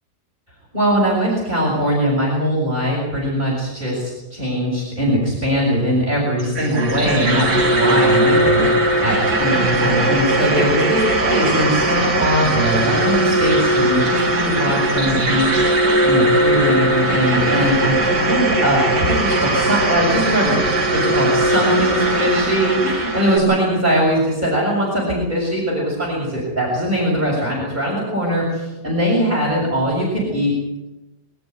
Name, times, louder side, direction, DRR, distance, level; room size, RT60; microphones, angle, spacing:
voice 1, 0.7-30.8, equal, 25° right, -5 dB, 7.1 m, -21 dB
sound 1, 6.4-23.4, right 1 dB, 80° right, 3.5 m, -19 dB
25.0 x 13.5 x 9.6 m, 1.0 s
omnidirectional pair, 1.8 m